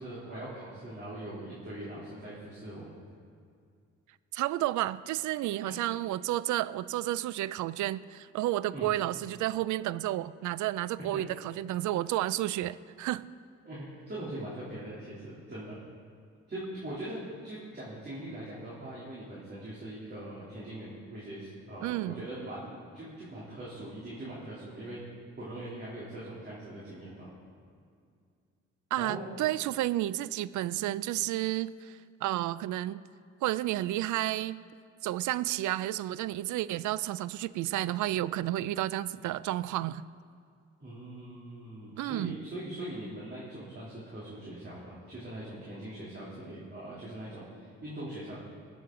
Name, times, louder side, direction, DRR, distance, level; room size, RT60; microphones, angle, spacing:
voice 1, 0.0-2.9 5.6-5.7 8.7-8.9 11.1-11.2 13.6-15.8 16.5-27.3 29.0-29.3 40.8-48.4, right 1 dB, 35° right, -8 dB, 3.1 m, -41 dB
voice 2, 4.3-13.3 21.8-22.3 28.9-33.0 33.4-34.6 35.0-40.0 42.0-42.4, right 14 dB, 75° right, 18 dB, 0.4 m, -31 dB
20.5 x 7.6 x 3.8 m, 2.3 s
cardioid pair, 90°, 30 cm